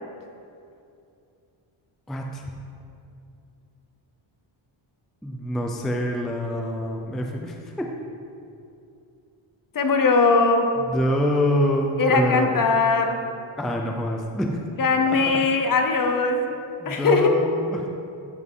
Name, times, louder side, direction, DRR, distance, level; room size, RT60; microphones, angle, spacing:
voice 1, 2.1-2.5 5.2-7.9 10.8-12.7 13.6-14.6 15.3-15.4 16.8-17.9, equal, ahead, 1 dB, 0.4 m, -26 dB
voice 2, 9.7-10.7 12.0-13.2 14.8-16.4 16.8-17.3, left 4 dB, 40° left, 5 dB, 0.7 m, -20 dB
13.0 x 6.1 x 3.7 m, 2.6 s
wide cardioid pair, 180°, 50 cm